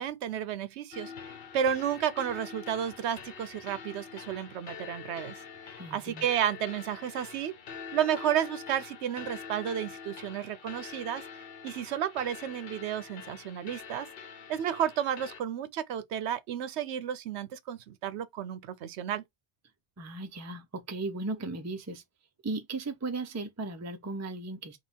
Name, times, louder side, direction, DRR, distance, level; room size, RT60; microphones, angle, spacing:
voice 1, 0.0-5.4 5.9-7.6 7.9-11.2 11.6-14.1 14.5-19.2, right 9 dB, 80° right, 0.9 m, -32 dB
sound 1, 0.9-15.4, left 7 dB, 60° left, 0.9 m, -45 dB
voice 2, 5.8-6.2 20.0-22.0 22.4-24.8, right 3 dB, 20° right, 0.4 m, -36 dB
3.7 x 2.4 x 4.3 m
omnidirectional pair, 1.1 m